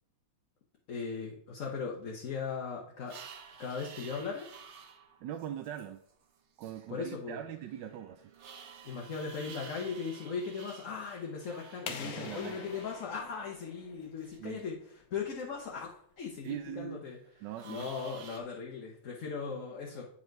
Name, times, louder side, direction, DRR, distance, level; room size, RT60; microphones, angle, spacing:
voice 1, 0.9-3.2 3.6-4.5 6.9-7.4 8.8-14.8 15.1-17.2 17.6-20.1, left 5 dB, 50° left, -1 dB, 1.1 m, -38 dB
sound 1, 3.0-6.9 7.3-13.4 14.2-14.7 16.2-16.5 17.2-18.4, right 6 dB, 55° right, 0.8 m, -52 dB
voice 2, 5.2-6.0 6.6-8.2 11.9-12.6 14.4-14.6 16.4-17.0 17.4-17.9, right 10 dB, 80° right, 7 dB, 1.2 m, -41 dB
sound 2, 11.9-14.5, left 6 dB, 90° left, 1.6 m, -45 dB
8.6 x 4.9 x 4.5 m, 0.66 s
omnidirectional pair, 2.0 m